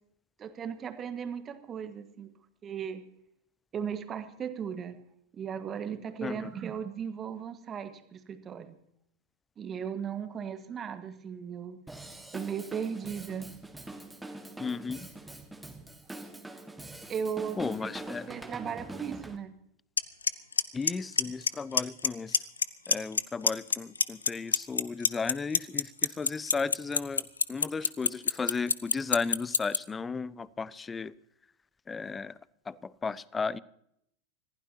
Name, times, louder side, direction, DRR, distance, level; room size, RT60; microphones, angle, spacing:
voice 1, 0.4-2.3 2.6-3.0 3.7-5.0 5.3-8.8 9.6-11.8 12.3-13.5 17.1-19.5, right 7 dB, 25° right, 9 dB, 1.5 m, -37 dB
Drum kit / Drum, 11.9-19.4, right 2 dB, 5° right, 1.7 m, -44 dB
voice 2, 14.6-15.1 17.6-18.3 20.7-22.4 22.9-31.1 31.9-32.4 32.7-33.6, left 4 dB, 15° left, 22 dB, 0.5 m, -35 dB
Clock, 20.0-20.1 20.3-20.6 20.9-21.5 21.8-22.1 22.3-23.2 23.5-29.8, left 5 dB, 75° left, 0.6 m, -23 dB
25.5 x 15.5 x 2.9 m, 0.72 s
figure-of-eight pair, 90°, 0 cm